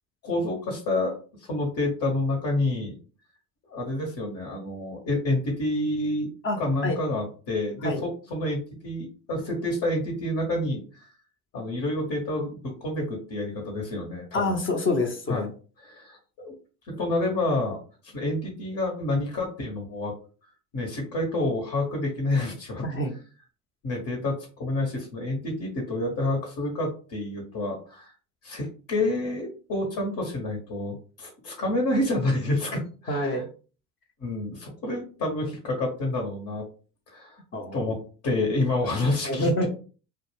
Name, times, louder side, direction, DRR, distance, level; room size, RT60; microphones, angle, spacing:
voice 1, 0.2-3.0 3.7-6.3 6.6-11.1 11.5-14.6 15.3-15.5 15.8-16.5 16.9-17.8 18.0-20.1 20.7-22.8 23.8-28.1 28.4-33.4 34.2-36.6 37.1-37.4 37.7-38.0 38.2-39.5, left 2 dB, 50° left, 0 dB, 1.0 m, -28 dB
voice 2, 6.4-7.0 7.8-8.0 14.3-15.5 22.8-23.1 33.1-33.5 37.5-37.9 39.2-39.7, left 1 dB, 30° left, 4 dB, 0.7 m, -27 dB
2.3 x 2.1 x 3.1 m, 0.38 s
hypercardioid pair, 75°, 42 cm